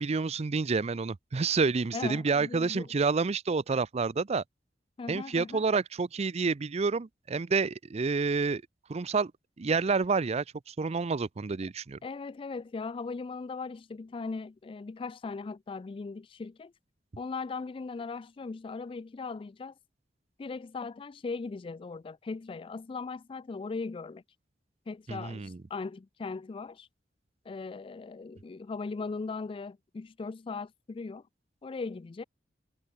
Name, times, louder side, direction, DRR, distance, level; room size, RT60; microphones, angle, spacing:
voice 1, 0.0-4.4 5.1-8.6 8.9-9.3 9.6-12.0 25.1-25.6, right 4 dB, 35° right, 0.5 m, -29 dB
voice 2, 1.9-2.9 5.0-5.7 12.0-16.7 17.2-19.7 20.4-24.2 24.9-26.9 27.5-31.2 31.6-32.2, left 4 dB, 30° left, 0.3 m, -38 dB
head